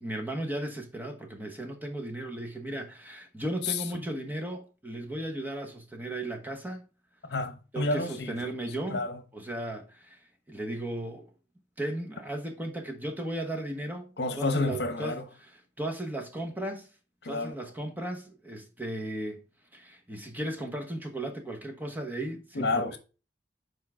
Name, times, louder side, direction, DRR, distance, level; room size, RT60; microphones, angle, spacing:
voice 1, 0.0-6.8 7.7-9.1 9.3-11.3 11.8-16.9 17.2-19.4 19.7-23.0, right 1 dB, 10° right, 1.1 m, -36 dB
voice 2, 7.3-8.4 8.9-9.2 14.2-15.3 17.2-17.5 22.5-23.0, left 2 dB, 60° left, 0.9 m, -29 dB
7.3 x 4.7 x 3.6 m
head